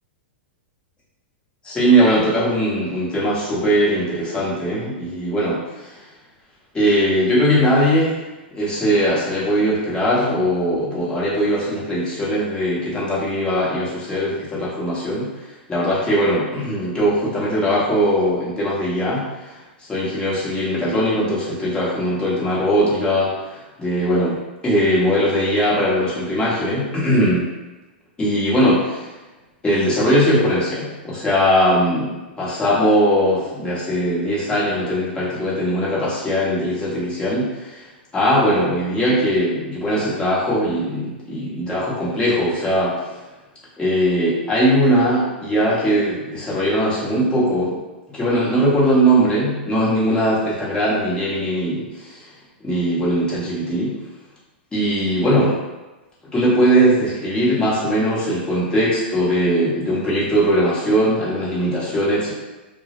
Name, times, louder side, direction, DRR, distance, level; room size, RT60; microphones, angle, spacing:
voice 1, 1.6-5.9 6.7-8.2 8.5-15.3 15.7-24.4 24.6-27.5 28.2-29.1 29.6-32.1 32.4-37.8 38.1-43.0 43.8-47.8 48.1-52.3 52.6-53.9 54.7-55.6 56.3-62.3, equal, 15° left, -8 dB, 0.9 m, -20 dB
2.1 x 2.0 x 2.9 m, 1.1 s
hypercardioid pair, 120°, 6 cm